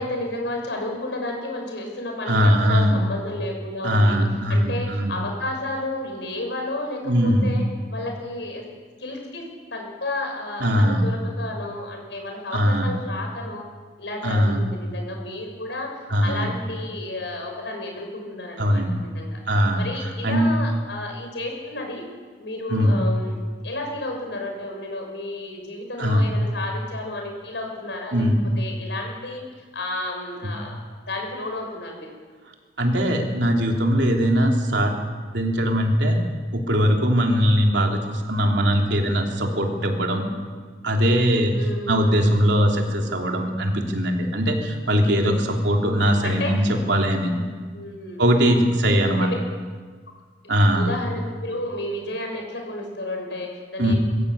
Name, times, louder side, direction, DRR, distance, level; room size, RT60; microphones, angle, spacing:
voice 1, 0.0-4.2 4.5-7.6 7.9-8.6 9.0-13.7 14.0-19.4 19.8-22.0 22.4-28.2 28.6-32.1 41.5-42.1 45.4-46.5 47.7-48.6 49.0-49.3 50.7-54.0, left 2 dB, 80° left, 2 dB, 6.1 m, -32 dB
voice 2, 2.2-3.0 3.8-5.1 7.0-7.5 10.6-11.1 12.5-12.9 14.2-14.7 16.1-16.5 18.6-19.0 19.5-19.8 20.2-20.5 22.7-23.0 26.0-26.3 28.1-28.4 30.4-30.5 32.8-35.0 35.3-36.2 36.5-40.3 40.8-41.5 41.9-47.3 48.2-49.3 50.5-50.9 53.8-53.9, equal, 80° right, 1 dB, 3.2 m, -20 dB
22.0 x 15.5 x 8.4 m, 1.5 s
head